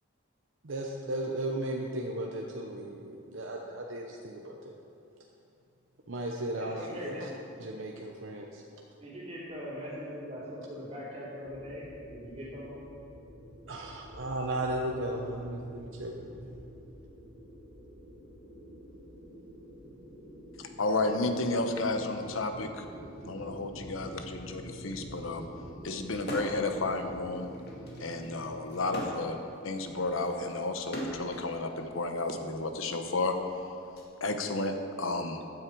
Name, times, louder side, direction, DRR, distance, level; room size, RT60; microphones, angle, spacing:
voice 1, 0.6-4.7 6.1-7.1 7.6-8.6 13.7-16.6, right 1 dB, 75° right, 0 dB, 0.9 m, -35 dB
voice 2, 6.5-7.3 9.0-12.8, equal, 25° right, -11 dB, 3.1 m, -41 dB
sound 1, 11.4-29.1, equal, 25° left, 3.6 m, -48 dB
voice 3, 20.6-22.8 23.2-25.5 25.8-27.5 28.0-29.4 29.6-33.3 34.2-35.4, left 2 dB, 85° left, 6 dB, 1.1 m, -32 dB
sound 2, 26.2-26.7 27.1-31.5 32.4-34.0, equal, 55° left, 2.3 m, -40 dB
15.0 x 9.7 x 4.7 m, 2.6 s
head